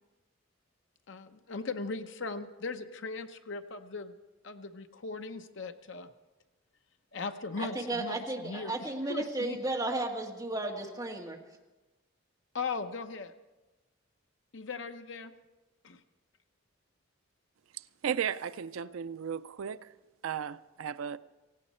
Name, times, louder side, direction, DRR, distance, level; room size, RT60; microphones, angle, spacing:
voice 1, 1.1-4.1 4.4-6.1 7.1-9.6 12.5-13.3 14.5-15.3 15.8-16.0, left 4 dB, 60° left, 0.8 m, -38 dB
voice 2, 7.6-11.4, right 2 dB, 20° right, 1.7 m, -34 dB
voice 3, 18.0-19.9 20.2-21.2, right 8 dB, 75° right, 0.4 m, -35 dB
17.5 x 16.5 x 4.3 m
head